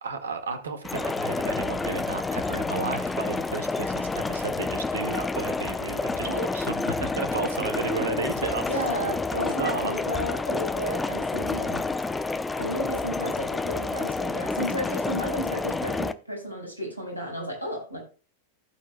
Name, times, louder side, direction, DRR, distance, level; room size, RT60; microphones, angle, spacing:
voice 1, 0.0-8.7 9.3-9.9, right 4 dB, 70° right, 1.8 m, -33 dB
sound 1, 0.8-16.1, left 3 dB, 10° left, 0.7 m, -29 dB
voice 2, 7.9-8.3 8.7-11.9 12.6-18.0, equal, 85° left, 5.0 m, -33 dB
15.5 x 7.3 x 2.3 m
figure-of-eight pair, 90°, 0 cm